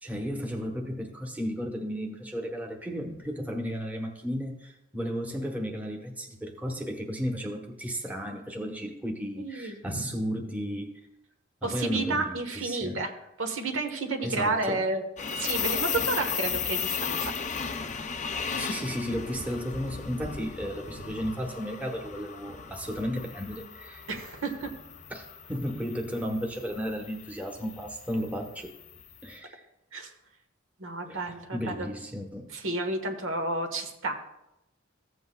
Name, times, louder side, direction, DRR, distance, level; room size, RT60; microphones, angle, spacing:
voice 1, 0.0-11.0 11.6-13.0 14.2-14.9 18.5-24.1 25.1-28.8 29.2-29.6 31.1-31.2 31.5-32.5, equal, 10° right, 0 dB, 1.0 m, -34 dB
voice 2, 9.4-10.1 11.6-13.1 13.4-15.0 15.3-17.3 24.1-24.7 29.9-30.1 30.8-31.9 32.5-34.1, right 2 dB, 75° right, 4 dB, 1.2 m, -31 dB
sound 1, 15.2-29.2, left 6 dB, 35° left, 0.5 m, -36 dB
15.0 x 8.0 x 2.3 m, 0.87 s
head